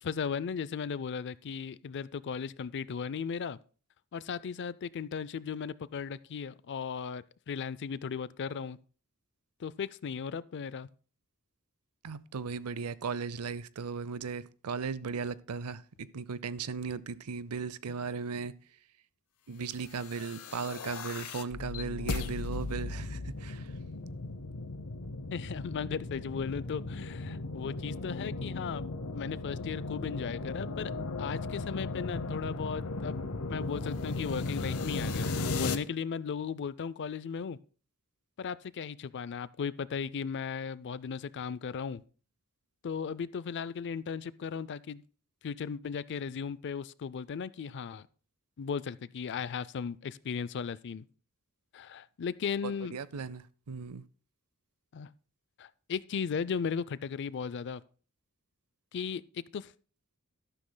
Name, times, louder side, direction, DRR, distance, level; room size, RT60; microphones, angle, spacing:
voice 1, 0.0-3.6 4.1-8.8 9.6-10.9 25.3-28.9 29.1-30.9 31.2-37.6 38.4-42.0 42.8-45.0 45.4-48.1 48.6-51.0 51.7-53.0 54.9-55.1 55.6-57.8 58.9-59.2 59.5-59.7, left 6 dB, 55° left, 0.4 m, -36 dB
voice 2, 12.0-18.5 19.5-23.7 52.6-54.0, right 5 dB, 85° right, 0.6 m, -37 dB
sound 1, 20.0-35.8, left 3 dB, 75° left, 0.8 m, -36 dB
13.0 x 11.5 x 2.2 m
head